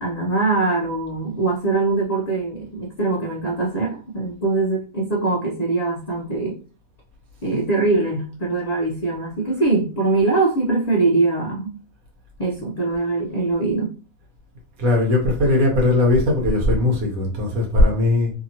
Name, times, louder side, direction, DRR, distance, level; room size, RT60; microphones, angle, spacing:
voice 1, 0.0-6.6 7.4-11.8 12.4-13.9, right 3 dB, 85° left, 0.3 m, -22 dB
voice 2, 14.8-18.3, left 2 dB, 85° right, 1.3 m, -18 dB
2.8 x 2.8 x 2.7 m
omnidirectional pair, 1.5 m